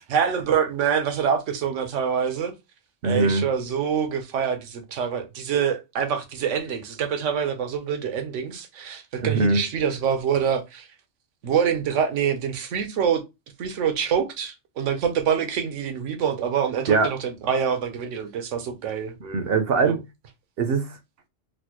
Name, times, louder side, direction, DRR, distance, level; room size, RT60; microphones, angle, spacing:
voice 1, 0.0-2.5 3.0-10.9 11.4-13.2 13.6-19.1 19.8-20.0, right 7 dB, 85° right, 1.1 m, -25 dB
voice 2, 3.0-3.4 9.2-9.6 16.9-17.1 19.2-20.0 20.6-21.0, right 4 dB, 65° right, 0.7 m, -22 dB
4.2 x 2.1 x 2.9 m
omnidirectional pair, 1.2 m